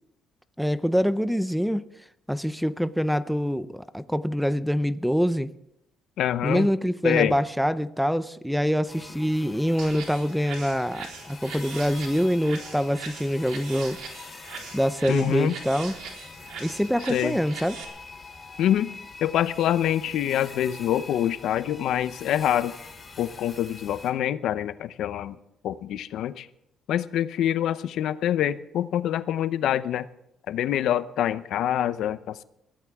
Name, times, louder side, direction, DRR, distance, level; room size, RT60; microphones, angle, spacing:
voice 1, 0.6-1.9 2.3-5.5 6.4-14.0 14.7-15.9 16.6-17.8, equal, ahead, 14 dB, 0.5 m, -25 dB
voice 2, 6.2-6.7 7.0-7.3 15.1-15.5 17.1-17.4 18.6-18.9 19.2-22.7 23.2-25.3 25.6-26.5 26.9-30.1 30.5-32.4, left 11 dB, 70° left, 13 dB, 0.7 m, -25 dB
sound 1, 8.9-24.1, left 4 dB, 25° left, 3.2 m, -44 dB
sound 2, 9.8-17.8, right 5 dB, 85° right, 4.0 m, -41 dB
22.0 x 16.0 x 3.6 m, 0.79 s
cardioid pair, 135°, 0 cm